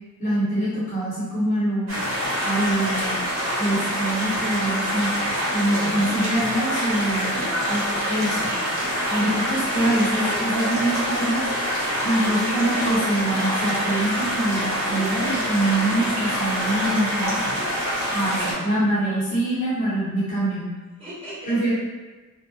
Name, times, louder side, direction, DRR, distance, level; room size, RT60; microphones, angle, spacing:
voice 1, 0.2-1.9 2.4-3.2 3.6-5.1 5.5-7.3 7.7-8.4 9.1-11.5 12.0-17.4 18.1-20.7 21.5-21.7, right 1 dB, 35° left, -9 dB, 0.8 m, -24 dB
sound 1, 1.9-18.5, equal, 85° right, 0.9 m, -25 dB
voice 2, 7.2-7.8 8.2-8.9 21.0-21.7, equal, 25° right, -13 dB, 1.3 m, -35 dB
2.6 x 2.1 x 2.7 m, 1.3 s
head